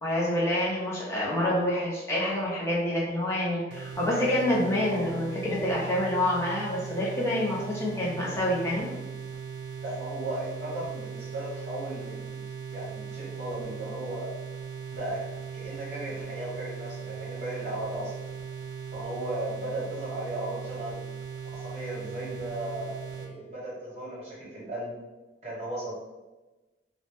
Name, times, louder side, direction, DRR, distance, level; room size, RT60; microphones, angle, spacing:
voice 1, 0.0-8.9, left 1 dB, 15° left, -6 dB, 0.5 m, -27 dB
sound 1, 3.7-23.3, right 6 dB, 85° right, 0.3 m, -39 dB
voice 2, 9.8-12.4 12.7-14.3 14.9-15.3 15.5-18.1 18.9-21.1 21.5-24.9 25.4-25.9, right 1 dB, 35° right, -7 dB, 0.9 m, -36 dB
2.0 x 2.0 x 2.9 m, 1.1 s
head